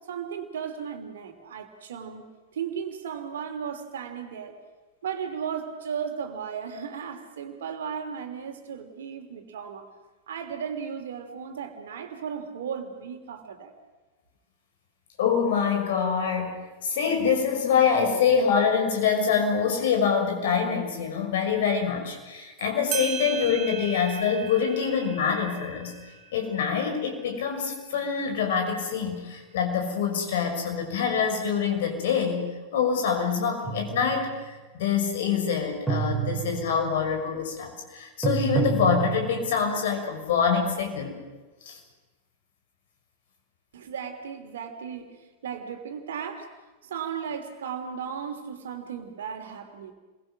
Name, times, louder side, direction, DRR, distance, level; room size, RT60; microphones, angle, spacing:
voice 1, 0.1-2.2 2.5-4.5 5.0-9.9 10.3-13.7 43.7-46.5 46.8-49.9, right 7 dB, 60° right, 6 dB, 3.2 m, -35 dB
voice 2, 15.2-25.9 26.3-41.2 41.6-41.8, left 6 dB, 55° left, 4 dB, 6.2 m, -25 dB
sound 1, 22.6-22.7 22.9-28.0, right 7 dB, 35° right, 3.6 m, -38 dB
sound 2, 33.6-34.2 35.9-36.9 38.2-39.5, right 6 dB, 5° right, 6.7 m, -28 dB
29.5 x 23.0 x 6.2 m, 1.2 s
figure-of-eight pair, 90°, 0 cm